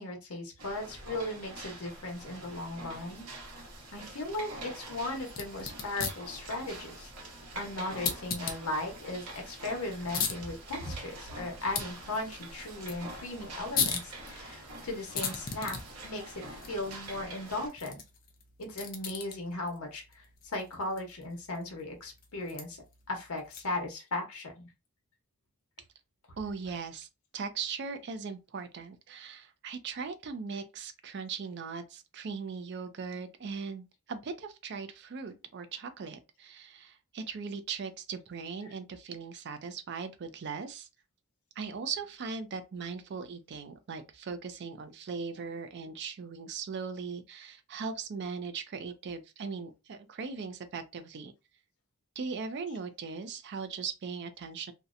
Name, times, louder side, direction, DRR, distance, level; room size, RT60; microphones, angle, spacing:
voice 1, 0.0-3.3 3.9-7.1 7.5-15.8 16.0-18.0 18.6-22.8 23.1-24.6 26.7-26.8 52.7-52.8, left 2 dB, 75° left, 0.9 m, -37 dB
sound 1, 0.6-17.7, right 2 dB, 85° right, 0.9 m, -46 dB
sound 2, 5.2-23.9, left 6 dB, 40° left, 0.5 m, -40 dB
voice 2, 26.4-27.1 27.3-40.9 41.6-51.3 52.2-54.7, right 5 dB, 50° right, 0.4 m, -39 dB
2.7 x 2.1 x 2.4 m
head